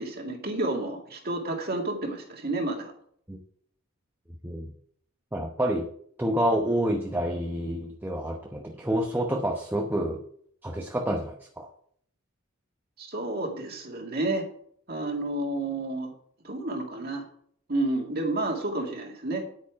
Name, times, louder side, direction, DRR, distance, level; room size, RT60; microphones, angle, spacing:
voice 1, 0.0-2.9 13.0-14.5 14.9-16.1 16.4-17.3 17.7-19.5, right 2 dB, 45° right, 2 dB, 2.2 m, -30 dB
voice 2, 5.3-5.9 6.2-10.2 10.6-11.7, right 1 dB, 10° right, 1 dB, 0.9 m, -28 dB
10.0 x 8.7 x 4.8 m, 0.62 s
head